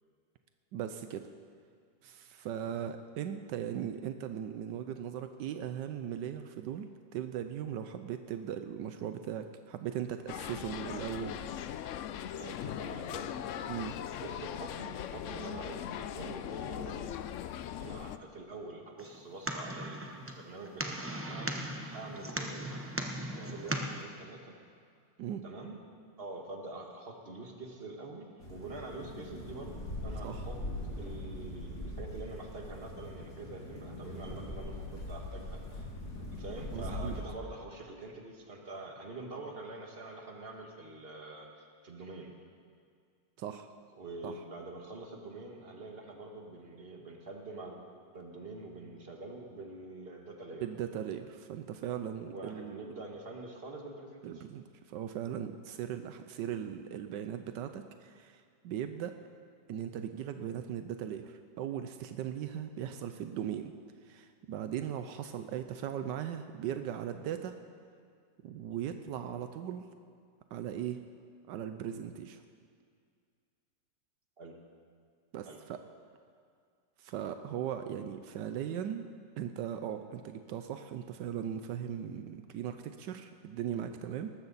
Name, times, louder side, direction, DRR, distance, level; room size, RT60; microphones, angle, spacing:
voice 1, 0.7-1.3 2.0-11.4 13.7-13.9 25.2-25.4 30.2-30.4 36.7-37.1 43.4-43.7 44.2-44.3 50.6-52.9 54.2-59.1 59.7-63.7 64.0-67.5 68.4-69.9 70.5-71.0 71.5-72.4 75.3-75.8 77.0-79.1 79.4-84.3, right 9 dB, 85° right, 8 dB, 1.3 m, -38 dB
sound 1, 10.3-18.2, left 10 dB, 90° left, 0.6 m, -40 dB
voice 2, 12.4-13.4 14.2-17.1 17.8-21.0 21.3-22.8 23.3-24.6 25.4-25.8 26.2-30.6 30.9-35.9 36.3-42.3 43.9-47.8 48.1-50.7 52.2-54.5 74.4-74.6 75.5-75.6, right 2 dB, 35° right, 1 dB, 1.7 m, -45 dB
sound 2, 19.0-24.0, right 1 dB, 15° right, 0.5 m, -38 dB
sound 3, 28.4-37.3, left 1 dB, 65° left, 3.7 m, -41 dB
18.5 x 14.0 x 4.1 m, 2.2 s
omnidirectional pair, 1.9 m